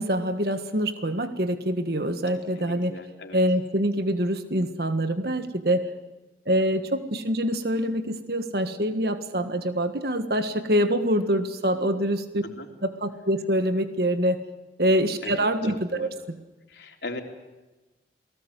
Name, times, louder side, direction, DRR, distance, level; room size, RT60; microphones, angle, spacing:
voice 1, 0.0-3.0 3.3-5.9 6.5-12.4 12.8-14.4 14.8-16.4, equal, 60° right, 8 dB, 1.7 m, -25 dB
voice 2, 2.6-3.4 12.6-12.7 15.2-16.1 16.7-17.2, left 2 dB, 75° left, 2 dB, 3.5 m, -39 dB
28.5 x 19.5 x 8.2 m, 1.1 s
head